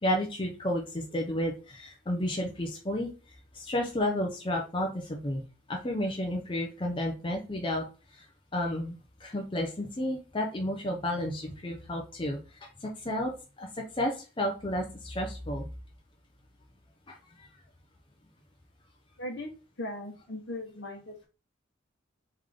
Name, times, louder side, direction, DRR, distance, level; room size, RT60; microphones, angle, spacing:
voice 1, 0.0-3.1 3.5-5.4 5.7-7.8 8.1-8.3 8.5-12.4 12.8-13.7 14.0-15.7 17.1-17.5, left 1 dB, 25° left, 1 dB, 0.7 m, -32 dB
voice 2, 19.2-19.5 19.8-21.3, left 1 dB, 60° left, 3 dB, 1.1 m, -38 dB
3.6 x 3.3 x 3.6 m, 0.32 s
head